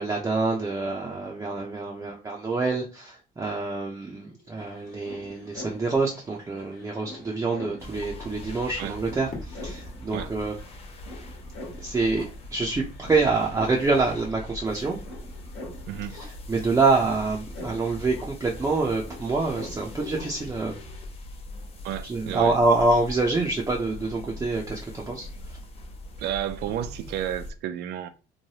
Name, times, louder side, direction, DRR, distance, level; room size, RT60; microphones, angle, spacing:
voice 1, 0.0-10.5 11.8-12.2 12.5-15.0 16.5-20.8 22.0-25.6, right 3 dB, 15° right, 0.5 m, -26 dB
sound 1, 4.0-4.1 4.3-21.0, left 1 dB, 75° left, 1.2 m, -45 dB
sound 2, 7.8-27.5, left 1 dB, 35° left, 0.5 m, -41 dB
Fireworks, 9.3-12.3, left 3 dB, 55° left, 1.1 m, -46 dB
voice 2, 21.8-22.6 26.2-28.1, right 11 dB, 75° right, 0.4 m, -32 dB
3.1 x 2.2 x 2.8 m
cardioid pair, 110°, 17 cm